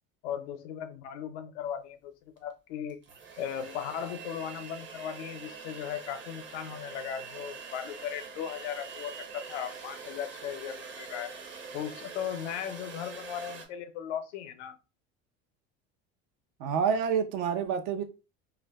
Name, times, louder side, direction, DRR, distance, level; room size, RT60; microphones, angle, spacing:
voice 1, 0.2-2.1 2.4-3.0 3.4-11.3 11.7-14.7, left 9 dB, 90° left, 0.6 m, -37 dB
sound 1, 2.4-2.5 2.9-13.7, right 5 dB, 35° right, 0.8 m, -44 dB
voice 2, 16.6-18.0, right 7 dB, 70° right, 0.7 m, -28 dB
2.4 x 2.2 x 3.4 m
supercardioid pair, 90°, 34 cm